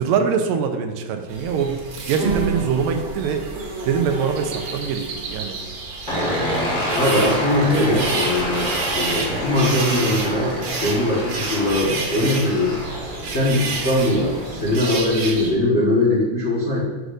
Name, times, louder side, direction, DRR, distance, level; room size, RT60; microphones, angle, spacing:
voice 1, 0.0-1.8 2.1-3.4 3.9-5.6 12.2-12.4, right 6 dB, 85° right, 5 dB, 2.4 m, -23 dB
sound 1, 1.3-15.5, right 3 dB, 60° right, 2.0 m, -30 dB
sound 2, 6.1-14.7, equal, 40° left, 0.6 m, -28 dB
voice 2, 6.9-12.8 13.3-16.8, left 1 dB, 85° left, -7 dB, 0.6 m, -21 dB
11.0 x 6.6 x 2.6 m, 1.3 s
omnidirectional pair, 4.0 m